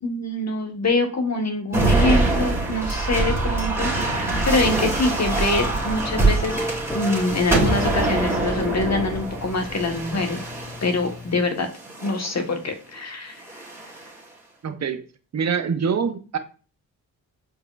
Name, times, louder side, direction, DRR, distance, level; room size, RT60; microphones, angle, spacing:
voice 1, 0.0-4.1 4.4-6.6 6.9-10.4 10.8-11.7 12.0-13.4, left 2 dB, 45° left, 5 dB, 1.2 m, -24 dB
sound 1, 1.7-11.1 11.8-12.3 13.4-14.1, right 2 dB, 5° right, 2.2 m, -24 dB
Telephone, 5.3-11.4, left 1 dB, 10° left, 0.3 m, -36 dB
voice 2, 14.6-15.0 15.3-16.4, right 6 dB, 45° right, 8 dB, 0.6 m, -24 dB
4.7 x 3.3 x 2.3 m, 0.37 s
supercardioid pair, 45°, 39 cm